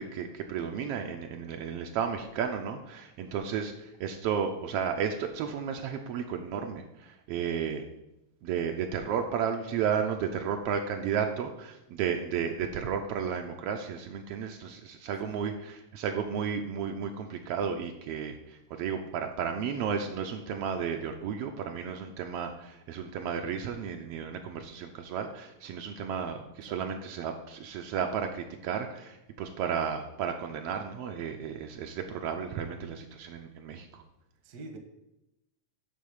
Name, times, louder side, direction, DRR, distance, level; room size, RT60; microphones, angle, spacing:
voice 1, 0.0-7.8 8.4-34.0, right 7 dB, 90° right, 4 dB, 1.4 m, -33 dB
voice 2, 34.4-34.8, right 3 dB, 65° right, 5 dB, 1.0 m, -45 dB
9.8 x 3.7 x 7.1 m, 0.88 s
omnidirectional pair, 3.4 m